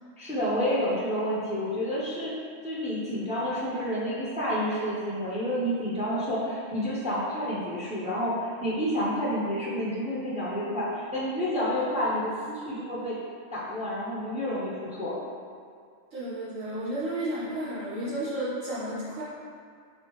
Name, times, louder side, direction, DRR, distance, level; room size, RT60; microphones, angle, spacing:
voice 1, 0.2-2.3 2.6-13.2 13.5-15.1, equal, 5° right, -7 dB, 0.5 m, -29 dB
voice 2, 16.1-19.2, right 1 dB, 75° right, -10 dB, 1.7 m, -32 dB
4.8 x 3.1 x 3.1 m, 2.2 s
omnidirectional pair, 1.3 m